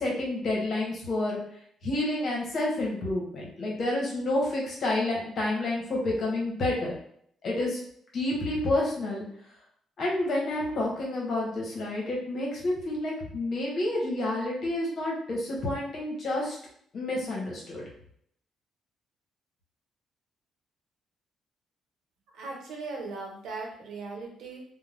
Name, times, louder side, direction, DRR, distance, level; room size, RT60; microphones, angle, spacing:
voice 1, 0.0-1.4 1.8-6.9 7.4-7.8 8.1-9.2 10.0-16.6 16.9-17.8, left 2 dB, 55° left, -2 dB, 1.1 m, -29 dB
voice 2, 22.3-24.6, right 3 dB, 75° right, -1 dB, 0.9 m, -38 dB
2.5 x 2.2 x 3.3 m, 0.67 s
cardioid pair, 90°, 0 cm